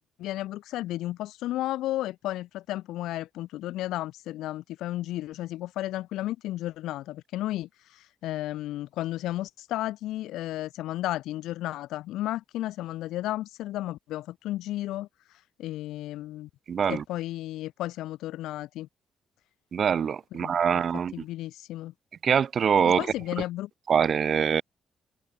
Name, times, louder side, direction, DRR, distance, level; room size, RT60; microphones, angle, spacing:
voice 1, 0.0-15.1 15.6-16.5 16.8-18.9 20.3-21.9 22.9-23.7, left 15 dB, 90° left, 5.8 m, -33 dB
voice 2, 16.7-17.0 19.7-21.1 22.2-23.0 23.9-24.6, right 7 dB, 50° right, 1.6 m, -24 dB
cardioid pair, 90°, 0 cm